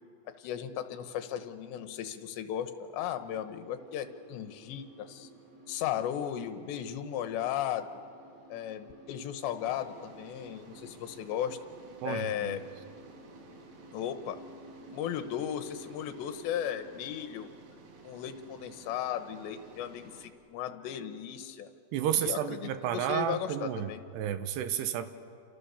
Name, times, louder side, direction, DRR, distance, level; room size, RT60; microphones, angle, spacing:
voice 1, 0.4-5.3 5.7-8.0 8.5-11.6 12.0-12.6 13.9-14.4 14.9-17.5 18.0-21.7 22.1-24.0, left 10 dB, 80° left, 9 dB, 3.3 m, -36 dB
sound 1, 3.1-16.9, right 2 dB, 40° right, 6.5 m, -55 dB
sound 2, 9.6-20.3, right 4 dB, 60° right, 3.4 m, -55 dB
voice 2, 12.0-12.6 21.9-25.1, right 10 dB, 75° right, 10 dB, 3.0 m, -32 dB
29.0 x 27.5 x 7.0 m, 2.5 s
omnidirectional pair, 5.2 m